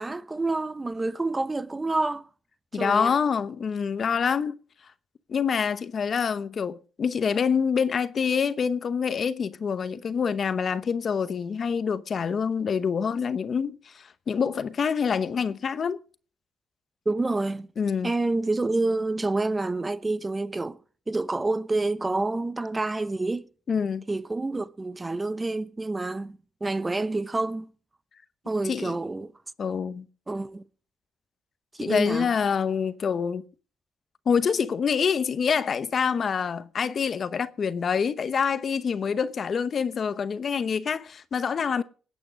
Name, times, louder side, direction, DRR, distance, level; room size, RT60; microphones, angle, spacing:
voice 1, 0.0-2.3 2.7-3.2 17.1-17.7 18.0-20.8 21.1-23.4 24.1-27.7 28.4-29.3 30.3-30.6 31.8-32.3, right 2 dB, 20° right, 0.8 m, -28 dB
voice 2, 2.7-4.6 5.3-16.0 17.8-18.1 23.7-24.0 28.6-29.0 29.6-30.1 31.8-33.4 34.3-41.8, left 6 dB, 50° left, 0.9 m, -26 dB
20.0 x 8.6 x 5.2 m
cardioid pair, 90°, 0 cm